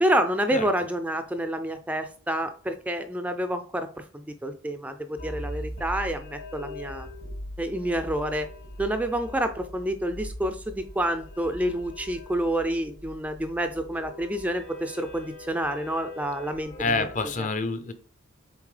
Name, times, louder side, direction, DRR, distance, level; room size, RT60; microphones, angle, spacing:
voice 1, 0.0-7.1 7.6-8.5 8.8-17.1 17.4-17.5, right 1 dB, 5° right, 0.3 m, -28 dB
sound 1, 5.2-17.4, left 1 dB, 65° left, 2.0 m, -41 dB
voice 2, 16.8-17.9, left 3 dB, 35° left, 0.6 m, -27 dB
7.0 x 4.2 x 3.2 m
head